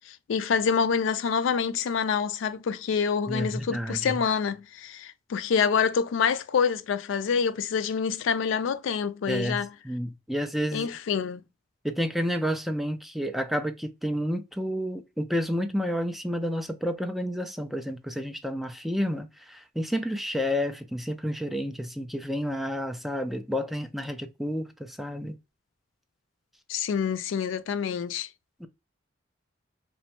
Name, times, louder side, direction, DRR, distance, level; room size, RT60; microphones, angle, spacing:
voice 1, 0.1-9.7 10.7-11.4 26.7-28.3, left 6 dB, 75° left, 0.3 m, -27 dB
voice 2, 3.3-4.2 9.3-10.9 11.8-25.4 28.6-28.7, equal, ahead, 0.3 m, -30 dB
2.9 x 2.2 x 2.8 m
head